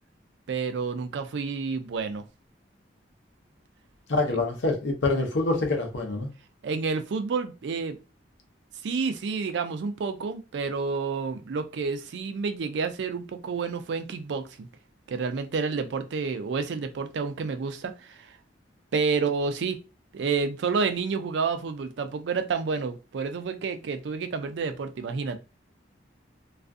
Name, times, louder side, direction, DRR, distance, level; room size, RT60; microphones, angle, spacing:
voice 1, 0.5-2.2 4.3-4.4 6.6-8.0 8.8-14.7 15.1-18.4 18.9-19.8 20.1-25.4, right 5 dB, 70° right, 0.4 m, -29 dB
voice 2, 4.1-6.3, left 2 dB, 80° left, 0.7 m, -26 dB
2.5 x 2.4 x 2.3 m
head